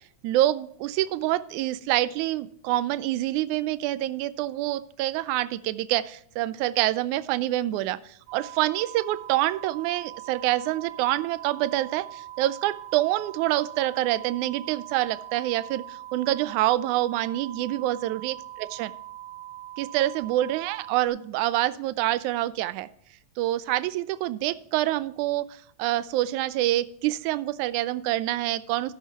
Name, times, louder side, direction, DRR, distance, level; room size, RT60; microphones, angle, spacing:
voice 1, 0.2-8.0 8.3-18.9 19.8-22.9 23.4-25.5 25.8-28.9, right 15 dB, 85° right, 16 dB, 2.0 m, -26 dB
sound 1, 8.3-21.1, right 13 dB, 50° right, 2.3 m, -42 dB
12.5 x 9.3 x 2.9 m, 0.70 s
omnidirectional pair, 3.4 m